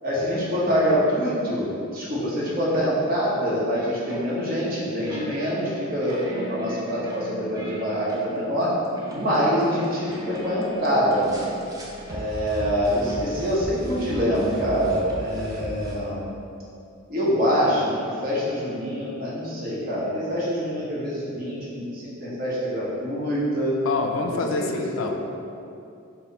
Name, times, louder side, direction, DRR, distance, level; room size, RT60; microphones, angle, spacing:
voice 1, 0.0-8.7 9.1-11.5 12.1-16.3 17.1-23.8 24.3-24.7 25.0-25.1, equal, 45° right, -7 dB, 0.9 m, -25 dB
sound 1, 3.7-16.0, right 1 dB, 20° right, 0.4 m, -38 dB
voice 2, 23.9-25.1, left 3 dB, 70° left, 4 dB, 0.3 m, -26 dB
4.1 x 2.1 x 4.0 m, 2.5 s
head